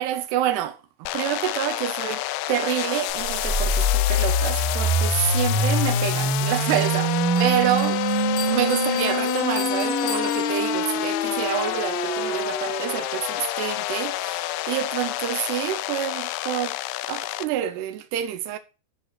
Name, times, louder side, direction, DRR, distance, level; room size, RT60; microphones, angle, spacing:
voice 1, 0.0-7.1 7.4-8.0 8.5-16.8 17.1-18.6, right 11 dB, 75° right, 2.6 m, -28 dB
sound 1, 1.1-17.5, left 15 dB, 80° left, 2.8 m, -28 dB
sound 2, 3.2-13.1, right 1 dB, 45° right, 2.0 m, -25 dB
Bell, 6.7-11.2, left 4 dB, 50° left, 2.7 m, -38 dB
12.5 x 4.3 x 6.5 m
omnidirectional pair, 5.7 m